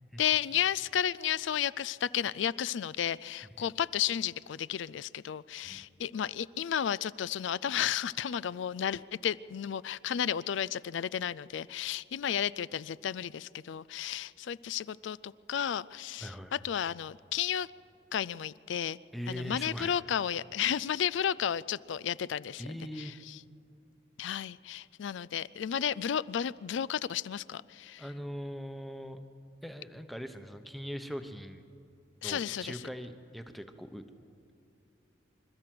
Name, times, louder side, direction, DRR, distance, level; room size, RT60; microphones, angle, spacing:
voice 1, 0.2-17.7 18.1-19.0 19.3-22.7 23.0-23.1 24.2-28.0 32.2-32.8, left 9 dB, 75° left, 20 dB, 0.4 m, -33 dB
voice 2, 16.2-16.5 19.1-20.0 22.6-23.1 28.0-29.2 29.6-31.6 32.2-34.0, equal, ahead, 8 dB, 0.9 m, -41 dB
25.5 x 13.0 x 7.7 m, 2.5 s
head